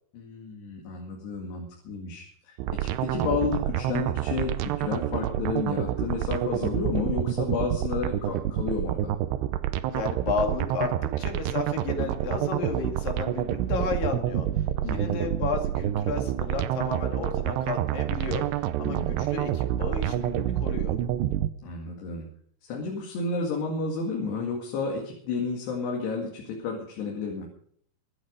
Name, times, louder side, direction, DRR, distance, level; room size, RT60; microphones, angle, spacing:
voice 1, 0.1-9.1 14.8-15.2 18.8-19.3 21.6-22.3 22.6-27.5, left 4 dB, 80° left, 0 dB, 4.2 m, -31 dB
sound 1, 2.6-21.5, right 12 dB, 90° right, 2.9 m, -28 dB
voice 2, 9.9-14.5 14.9-18.4 18.8-21.0, left 5 dB, 60° left, 3 dB, 3.8 m, -32 dB
23.5 x 8.9 x 5.1 m, 0.63 s
omnidirectional pair, 4.7 m